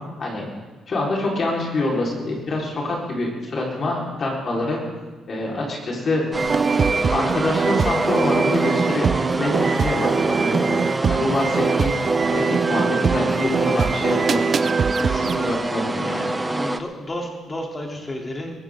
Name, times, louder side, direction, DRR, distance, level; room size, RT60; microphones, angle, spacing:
voice 1, 0.9-4.8 5.3-6.3 6.6-14.7 15.2-16.2, left 2 dB, 45° left, -3 dB, 4.4 m, -26 dB
sound 1, 6.3-16.8, right 2 dB, 15° right, 0.9 m, -26 dB
sound 2, 6.4-15.6, right 6 dB, 45° right, 0.6 m, -23 dB
voice 2, 14.9-15.4 16.4-18.6, left 1 dB, 25° left, 0 dB, 3.3 m, -32 dB
22.5 x 14.5 x 3.8 m, 1.3 s
cardioid pair, 85°, 0 cm